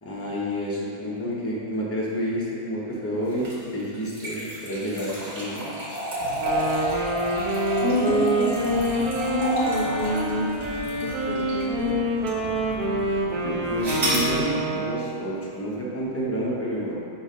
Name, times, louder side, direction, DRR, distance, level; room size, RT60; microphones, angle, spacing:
voice 1, 0.0-3.5 3.7-5.7 13.1-13.2 13.4-16.9, equal, 10° left, -6 dB, 0.9 m, -29 dB
sound 1, 3.3-11.8 12.3-12.4 13.8-14.3, right 1 dB, 50° right, 1.6 m, -30 dB
sound 2, 6.2-14.5, right 2 dB, 35° right, 0.5 m, -41 dB
Wind instrument woodwind instrument, 6.3-15.2, right 1 dB, 90° right, 1.4 m, -27 dB
voice 2, 7.8-9.0 9.3-10.6 10.9-12.0, left 1 dB, 50° left, -7 dB, 0.8 m, -28 dB
6.4 x 3.5 x 5.1 m, 2.4 s
omnidirectional pair, 1.6 m